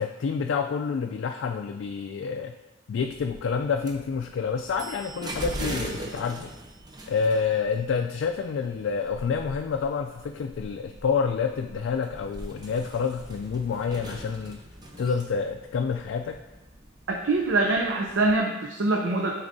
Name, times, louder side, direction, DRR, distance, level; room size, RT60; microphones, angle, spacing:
voice 1, 0.0-2.5 2.9-6.5 7.1-14.6 15.0-16.4, left 5 dB, 75° left, 5 dB, 0.3 m, -28 dB
elevator door and ding, 3.0-18.4, right 1 dB, 20° right, 0.7 m, -41 dB
voice 2, 17.1-19.3, right 2 dB, 70° right, 1 dB, 0.5 m, -24 dB
9.3 x 3.9 x 2.7 m, 1.0 s
head